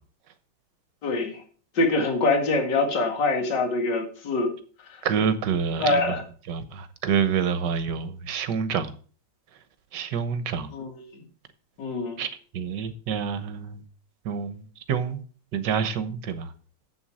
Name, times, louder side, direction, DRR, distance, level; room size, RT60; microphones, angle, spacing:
voice 1, 1.0-1.4 1.8-4.5 5.8-6.2 10.7-11.1 11.8-12.2, left 3 dB, 55° left, 2.5 m, -24 dB
voice 2, 5.0-6.0 6.5-6.6 7.0-8.9 9.9-10.7 12.2-12.3 12.5-13.8 14.3-14.6 14.9-15.2 15.5-16.4, right 7 dB, 60° right, 1.5 m, -27 dB
8.0 x 7.1 x 6.3 m
omnidirectional pair, 2.4 m